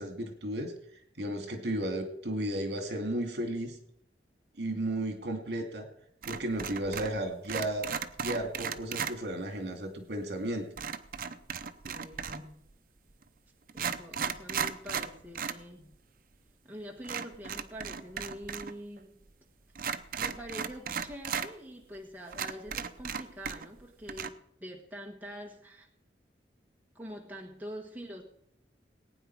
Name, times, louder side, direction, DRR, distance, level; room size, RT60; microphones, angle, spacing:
voice 1, 0.0-3.8 4.6-5.9 6.3-7.9 8.2-10.7, right 1 dB, 70° right, 5 dB, 2.3 m, -34 dB
sound 1, 6.2-7.2 7.4-9.2 10.8-12.5 13.2-13.3 13.7-15.6 15.9-16.0 17.0-18.7 19.0-19.1 19.7-21.5 21.9-22.0 22.3-23.8 24.1-24.3, right 7 dB, 55° right, 0.7 m, -36 dB
voice 2, 11.8-12.7 13.7-15.9 16.6-19.2 20.1-25.9 26.9-28.2, equal, 10° right, 1 dB, 1.5 m, -45 dB
19.0 x 9.2 x 4.7 m, 0.71 s
head